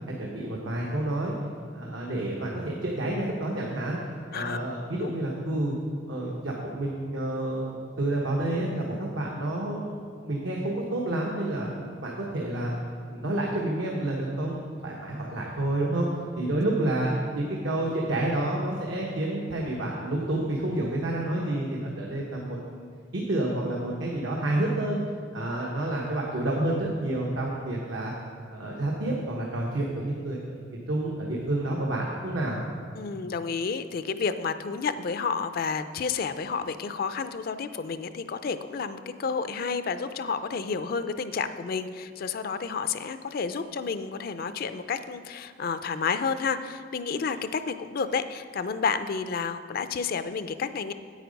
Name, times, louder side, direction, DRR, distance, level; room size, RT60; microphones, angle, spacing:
voice 1, 0.2-1.3 1.7-5.7 6.1-11.7 12.0-12.7 13.1-16.1 16.4-22.9 23.1-25.0 25.3-28.1 28.5-32.6, right 1 dB, 85° right, -3 dB, 1.2 m, -29 dB
voice 2, 32.9-50.9, left 5 dB, 50° left, 11 dB, 0.4 m, -30 dB
9.1 x 8.5 x 5.2 m, 2.1 s
head